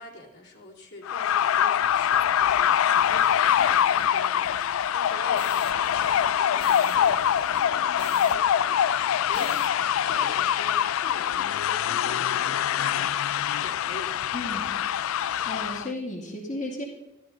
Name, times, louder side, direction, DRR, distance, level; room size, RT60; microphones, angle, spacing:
voice 1, 0.0-13.1 13.6-14.1, left 2 dB, 60° left, -2 dB, 2.4 m, -43 dB
sound 1, 1.0-15.9, left 9 dB, 85° left, 0.3 m, -24 dB
sound 2, 1.8-8.4 8.7-8.8 9.1-9.7, right 6 dB, 75° right, 0.5 m, -46 dB
voice 2, 15.0-16.8, left 1 dB, 40° left, -3 dB, 2.2 m, -34 dB
13.0 x 12.5 x 4.0 m, 0.97 s
head